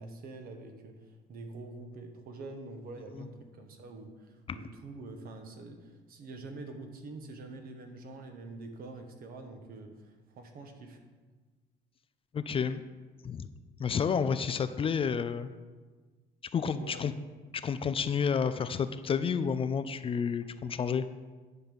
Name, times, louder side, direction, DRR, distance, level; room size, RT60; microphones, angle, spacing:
voice 1, 0.0-11.0 16.7-17.1, right 2 dB, 60° right, 5 dB, 1.3 m, -46 dB
voice 2, 12.3-12.8 13.2-13.5 13.8-15.5 16.5-17.1 17.5-21.0, left 6 dB, 35° left, 12 dB, 0.4 m, -30 dB
10.0 x 4.0 x 6.9 m, 1.3 s
cardioid pair, 110°, 17 cm